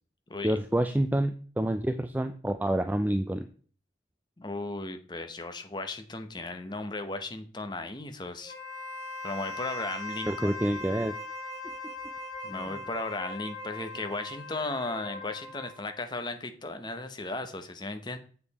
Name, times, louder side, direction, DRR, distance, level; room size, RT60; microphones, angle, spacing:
voice 1, 0.4-3.5 10.3-11.1 12.5-12.7, right 1 dB, 10° right, 9 dB, 0.4 m, -28 dB
voice 2, 4.4-8.6 9.2-10.6 12.4-18.2, left 2 dB, 25° left, 8 dB, 0.9 m, -36 dB
Wind instrument woodwind instrument, 8.4-15.9, left 2 dB, 65° left, 3.3 m, -40 dB
7.6 x 6.8 x 4.1 m, 0.43 s
head